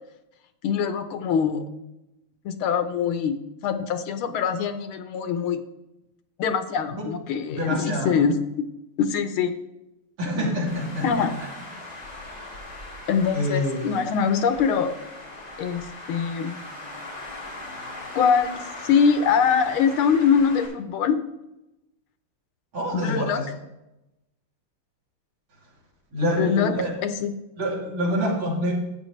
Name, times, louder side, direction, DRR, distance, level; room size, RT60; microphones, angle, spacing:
voice 1, 0.6-1.7 2.5-5.6 6.4-8.4 9.0-9.5 11.0-11.4 13.1-14.9 15.6-16.6 18.1-21.2 22.9-23.4 26.2-27.4, left 6 dB, 80° left, 9 dB, 1.7 m, -23 dB
voice 2, 7.6-8.1 10.2-11.5 13.3-14.1 22.7-23.5 26.1-26.9 27.6-28.7, equal, 75° right, -4 dB, 3.8 m, -26 dB
Traffic noise roadway noise, 10.7-20.7, left 2 dB, 50° left, 3.4 m, -40 dB
13.0 x 8.6 x 3.2 m, 0.92 s
omnidirectional pair, 2.3 m